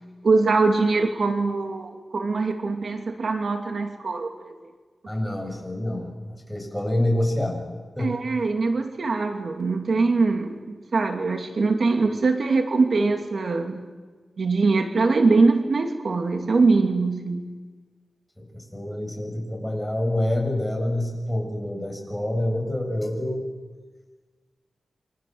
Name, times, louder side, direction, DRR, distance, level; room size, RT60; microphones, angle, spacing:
voice 1, 0.2-4.5 8.0-13.8 14.4-17.5, right 3 dB, 65° right, 5 dB, 2.5 m, -22 dB
voice 2, 5.1-8.1 18.4-23.5, left 1 dB, 5° left, 2 dB, 7.9 m, -27 dB
30.0 x 25.0 x 7.9 m, 1.4 s
wide cardioid pair, 85°, 0 cm